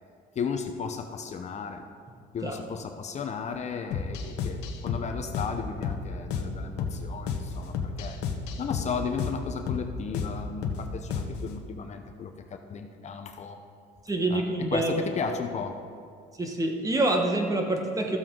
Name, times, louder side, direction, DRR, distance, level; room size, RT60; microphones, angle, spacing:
voice 1, 0.4-1.8 2.3-8.2 8.6-13.6 14.3-14.4 14.7-15.7, left 6 dB, 40° left, 6 dB, 0.7 m, -35 dB
sound 1, 3.9-11.5, left 5 dB, 90° left, 0.9 m, -32 dB
voice 2, 14.1-14.9 16.4-18.2, right 2 dB, 20° right, 3 dB, 1.2 m, -26 dB
14.0 x 7.5 x 3.8 m, 2.3 s
cardioid pair, 110°, 17 cm